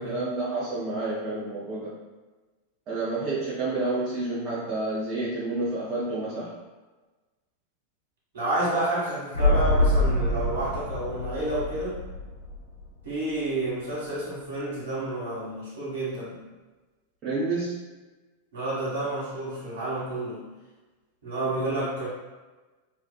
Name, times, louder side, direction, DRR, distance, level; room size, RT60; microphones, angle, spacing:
voice 1, 0.0-1.9 2.9-6.5 17.2-17.8, right 2 dB, 35° right, -9 dB, 0.7 m, -29 dB
voice 2, 8.3-12.0 13.0-16.4 18.5-20.5 21.2-22.1, right 1 dB, 65° right, -8 dB, 1.2 m, -30 dB
sound 1, 9.3-13.1 13.4-13.5, left 1 dB, 70° left, 0.8 m, -25 dB
2.7 x 2.4 x 2.2 m, 1.2 s
figure-of-eight pair, 90°, 0 cm